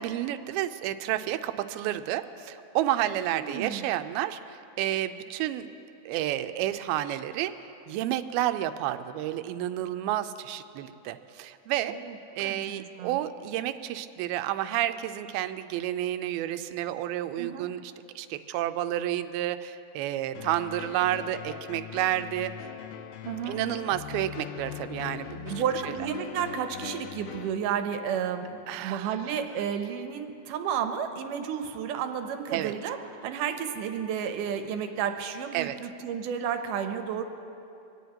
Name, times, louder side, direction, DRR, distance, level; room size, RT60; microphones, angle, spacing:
voice 1, 0.0-5.7 6.1-7.6 7.9-12.0 12.4-22.5 23.5-25.5 25.9-26.0 28.7-29.2 32.5-32.7 35.5-35.8, right 13 dB, 90° right, 10 dB, 2.5 m, -30 dB
voice 2, 3.3-3.9 11.9-13.2 17.4-17.7 23.3-23.6 25.5-33.0 33.2-37.2, right 8 dB, 70° right, 6 dB, 2.2 m, -32 dB
sound 1, 20.3-27.5, left 11 dB, 80° left, 2.3 m, -41 dB
24.5 x 18.5 x 2.9 m, 2.7 s
omnidirectional pair, 4.3 m